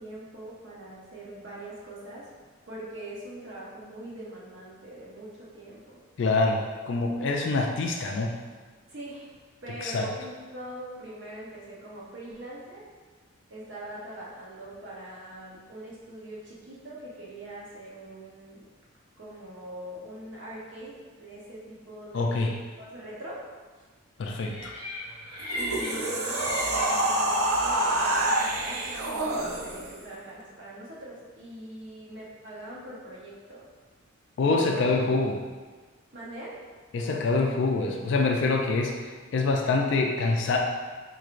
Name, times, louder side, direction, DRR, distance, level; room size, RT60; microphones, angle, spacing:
voice 1, 0.0-2.3 2.7-6.0 8.9-9.4 9.6-12.9 13.5-18.7 19.2-22.5 22.8-23.4 23.7-23.8 25.5-33.7 34.4-34.8 36.1-36.6, right 1 dB, 55° right, -6 dB, 0.8 m, -42 dB
voice 2, 6.2-8.3 9.8-10.0 22.1-22.5 24.2-24.7 34.4-35.4 36.9-40.6, left 3 dB, 55° left, 1 dB, 0.3 m, -25 dB
sound 1, 24.5-29.9, left 1 dB, 20° right, 0.9 m, -38 dB
sound 2, 25.4-30.0, right 1 dB, 85° right, 0.6 m, -27 dB
4.5 x 3.1 x 2.5 m, 1.4 s
head